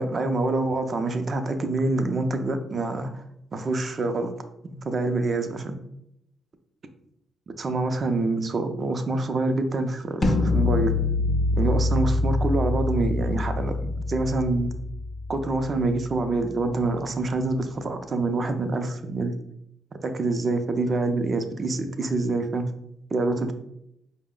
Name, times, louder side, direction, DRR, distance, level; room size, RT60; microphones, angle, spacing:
voice 1, 0.0-3.2 3.5-4.3 4.6-5.8 7.6-10.9 11.5-14.7 15.3-19.3 20.0-22.6 23.1-23.5, right 2 dB, 40° right, 8 dB, 0.5 m, -26 dB
sound 1, 10.2-16.2, left 2 dB, 30° left, 0.5 m, -25 dB
5.0 x 2.1 x 3.7 m, 0.78 s
cardioid pair, 90°, 0 cm